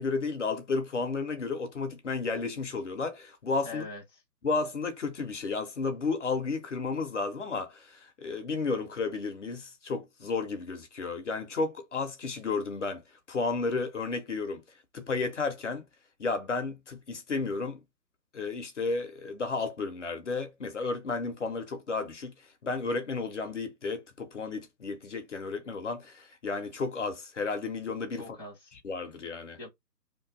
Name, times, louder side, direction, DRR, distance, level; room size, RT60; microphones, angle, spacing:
voice 1, 0.0-3.8 4.4-13.0 13.3-14.6 14.9-15.9 16.2-17.8 18.3-22.3 22.6-28.2 28.8-29.6, left 4 dB, 45° left, 0.8 m, -32 dB
voice 2, 3.6-4.2 28.1-28.8 29.6-29.7, left 2 dB, 15° left, 0.6 m, -43 dB
3.0 x 2.5 x 3.6 m
figure-of-eight pair, 155°, 49 cm